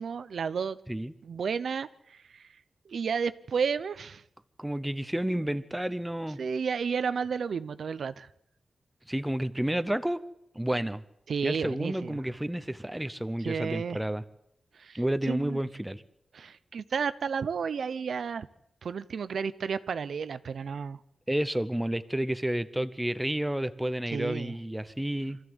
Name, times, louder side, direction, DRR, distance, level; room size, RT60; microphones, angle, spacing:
voice 1, 0.0-0.8 1.2-2.5 2.9-4.2 6.4-8.3 11.3-12.2 13.4-14.0 14.7-15.0 15.3-15.6 16.3-18.5 18.8-21.0 24.1-24.5, right 6 dB, 75° right, 14 dB, 0.7 m, -32 dB
voice 2, 4.6-6.4 9.1-10.2 10.5-11.0 11.4-14.2 14.9-16.0 21.3-25.4, right 1 dB, 5° right, 12 dB, 0.8 m, -30 dB
24.5 x 14.0 x 7.9 m, 0.80 s
wide cardioid pair, 155°, 0 cm